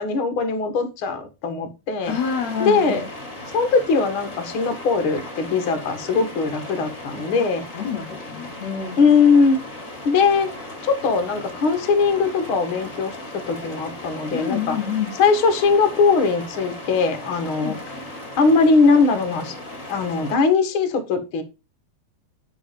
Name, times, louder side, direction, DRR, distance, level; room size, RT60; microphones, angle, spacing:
voice 1, 0.0-2.2 2.6-3.1 3.5-7.6 9.0-9.6 10.0-10.5 10.8-13.2 13.5-14.8 15.1-18.1 18.4-19.5 19.9-21.4, left 4 dB, 50° left, 1.5 m, -20 dB
sound 1, 2.0-20.4, left 1 dB, 25° left, 2.1 m, -37 dB
voice 2, 2.1-3.0 7.7-9.0 14.3-15.1 17.6-17.8, left 7 dB, 80° left, 1.5 m, -27 dB
10.0 x 6.3 x 5.3 m
omnidirectional pair, 4.7 m